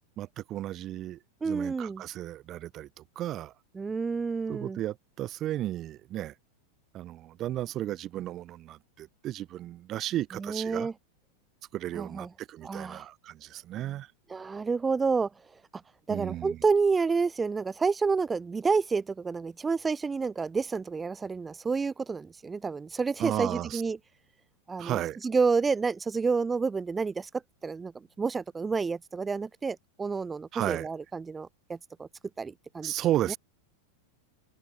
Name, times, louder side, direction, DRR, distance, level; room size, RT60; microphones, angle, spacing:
voice 1, 0.2-1.2 1.4-3.5 4.5-6.3 6.9-10.9 11.7-14.1 16.1-16.6 23.2-23.8 24.8-25.2 30.5-30.9 32.8-33.4, right 13 dB, 30° right, 6.8 m, -34 dB
voice 2, 1.4-2.0 3.7-4.8 10.3-10.9 12.0-12.3 12.6-13.1 14.3-15.3 15.7-15.8 16.1-24.0 24.7-27.3 27.6-32.1 32.4-32.9 33.3-33.4, right 4 dB, 15° right, 3.0 m, -29 dB
figure-of-eight pair, 90°, 0 cm